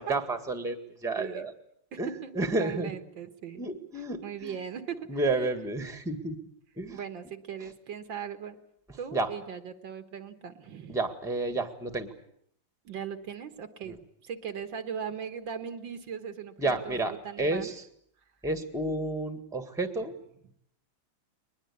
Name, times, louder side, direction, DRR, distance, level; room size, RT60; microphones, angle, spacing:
voice 1, 0.0-1.5 2.0-2.9 3.6-4.5 5.1-6.4 6.8-7.0 9.1-9.3 10.9-12.1 13.9-14.0 16.6-17.8 18.4-20.1, right 2 dB, ahead, 8 dB, 1.6 m, -31 dB
voice 2, 1.9-3.6 4.2-5.5 6.9-8.6 9.0-11.0 12.9-17.0 17.2-17.7, right 7 dB, 70° right, 9 dB, 2.1 m, -39 dB
22.5 x 20.5 x 8.6 m, 0.69 s
omnidirectional pair, 2.2 m